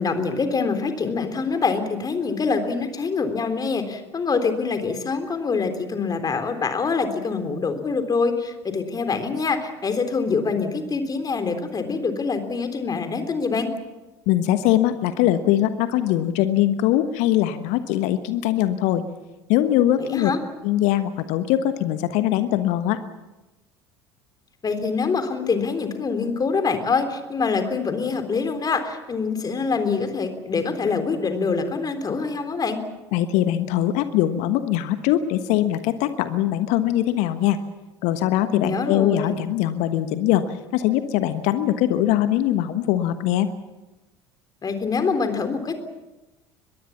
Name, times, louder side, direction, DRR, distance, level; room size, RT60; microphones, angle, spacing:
voice 1, 0.0-13.7 20.0-20.4 24.6-32.8 38.5-39.4 44.6-45.7, left 4 dB, 30° left, 8 dB, 3.6 m, -25 dB
voice 2, 14.3-19.0 19.5-20.3 20.6-23.0 33.1-37.6 38.0-40.4 40.7-43.5, left 12 dB, 55° left, 11 dB, 1.3 m, -21 dB
24.0 x 21.0 x 7.3 m, 1.1 s
figure-of-eight pair, 65°, 14 cm